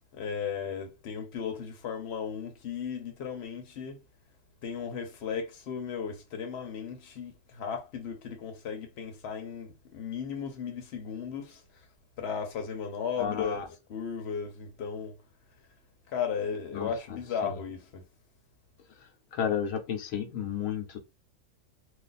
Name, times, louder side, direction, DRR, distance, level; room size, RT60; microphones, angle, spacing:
voice 1, 0.1-4.0 4.6-11.6 12.2-15.2 16.1-18.1, left 6 dB, 60° left, 1.0 m, -35 dB
voice 2, 13.2-13.6 16.7-16.9 17.4-17.6 19.3-21.0, left 8 dB, 90° left, 1.0 m, -32 dB
2.4 x 2.4 x 3.9 m
omnidirectional pair, 1.4 m